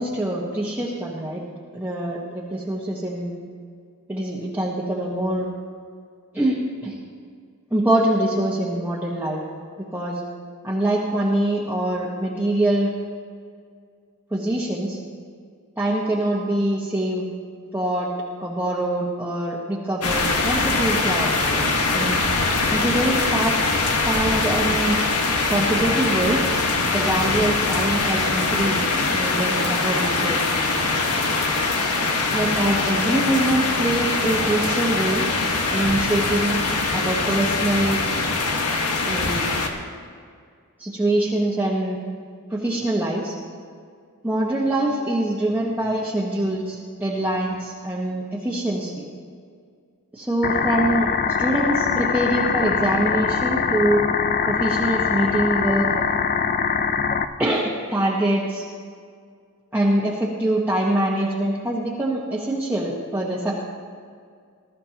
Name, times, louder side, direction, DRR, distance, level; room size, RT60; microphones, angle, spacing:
voice 1, 0.0-1.4 1.7-3.3 4.1-5.5 6.3-6.9 7.7-9.4 9.9-10.2 10.6-12.9 14.3-15.0 15.8-17.3 17.7-18.1 18.4-21.7 21.9-22.2 22.7-23.6 24.0-25.0 25.5-26.4 26.9-28.8 29.1-30.4 32.3-35.3 35.7-36.7 36.9-38.0 39.0-39.5 40.8-42.0 42.5-43.3 44.2-49.0 50.1-51.1 51.4-54.1 54.5-55.9 57.4-58.6 59.7-63.6, right 1 dB, 10° right, -6 dB, 1.3 m, -24 dB
sound 1, 20.0-39.7, left 3 dB, 85° left, 1.5 m, -22 dB
sound 2, 50.4-57.2, left 6 dB, 40° left, 0.5 m, -23 dB
21.0 x 13.0 x 2.9 m, 2.1 s
head